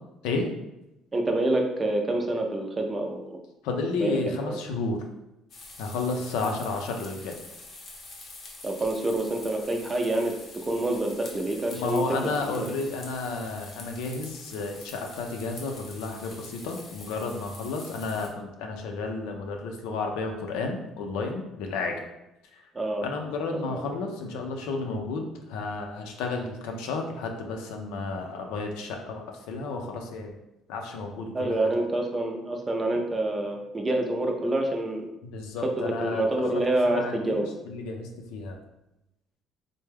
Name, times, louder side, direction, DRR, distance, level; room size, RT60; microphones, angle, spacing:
voice 1, 1.1-3.4 4.0-4.6 8.6-10.3 10.7-12.3 12.6-12.7 22.7-23.1 23.5-23.8 31.3-35.0 35.6-37.5, right 1 dB, 20° right, 2 dB, 0.5 m, -27 dB
voice 2, 3.6-5.0 5.8-7.4 11.7-21.9 22.5-22.7 23.0-30.4 30.7-31.7 35.3-36.2 36.5-36.6 36.9-38.6, left 3 dB, 90° left, 3 dB, 0.5 m, -32 dB
sound 1, 5.5-18.3, left 3 dB, 40° left, 0.7 m, -46 dB
3.3 x 2.2 x 3.3 m, 0.90 s
cardioid pair, 135°, 0 cm